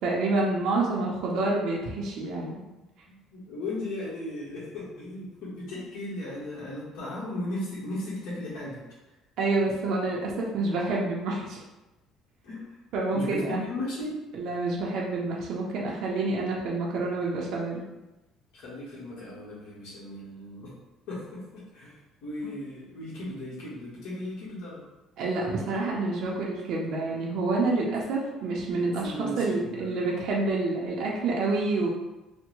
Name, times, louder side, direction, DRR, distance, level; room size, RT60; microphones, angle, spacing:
voice 1, 0.0-2.6 9.4-11.6 12.9-13.6 14.3-17.8 25.2-31.9, right 3 dB, 65° right, -3 dB, 0.6 m, -28 dB
voice 2, 3.3-8.8 12.4-12.6 13.1-14.1 18.5-20.7 21.1-21.9 22.2-24.8 29.0-30.0, left 1 dB, 75° left, -7 dB, 1.1 m, -36 dB
3.4 x 2.1 x 3.0 m, 1.0 s
cardioid pair, 125°, 0 cm